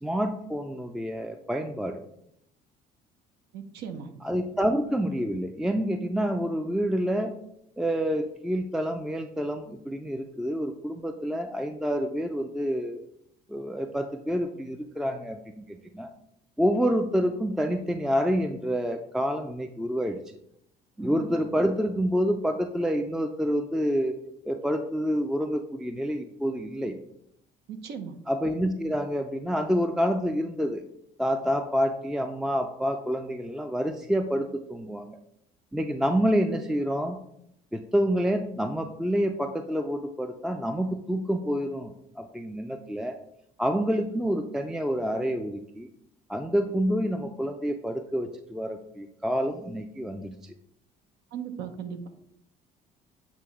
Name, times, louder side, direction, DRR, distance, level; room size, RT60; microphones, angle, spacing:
voice 1, 0.0-2.0 4.2-7.3 7.8-13.0 13.5-16.1 16.6-20.2 21.0-24.1 24.4-27.0 28.3-30.8 31.2-35.2 35.7-37.2 37.7-43.2 43.6-45.9 46.3-50.4, equal, 5° right, 6 dB, 0.3 m, -28 dB
voice 2, 3.5-4.1 27.7-28.2 51.3-52.1, right 7 dB, 80° right, 8 dB, 0.9 m, -37 dB
7.6 x 3.1 x 4.8 m, 0.76 s
cardioid pair, 110°, 17 cm